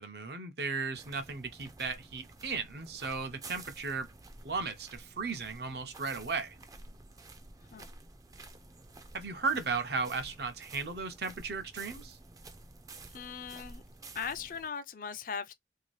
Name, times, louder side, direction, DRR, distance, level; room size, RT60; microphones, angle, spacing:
voice 1, 0.0-4.1 4.4-6.6 9.1-12.2, right 4 dB, 70° right, 0.7 m, -35 dB
sound 1, 0.9-14.7, right 2 dB, 20° right, 0.4 m, -51 dB
voice 2, 13.1-13.8 14.1-15.5, left 6 dB, 50° left, 0.4 m, -39 dB
2.8 x 2.5 x 3.1 m
head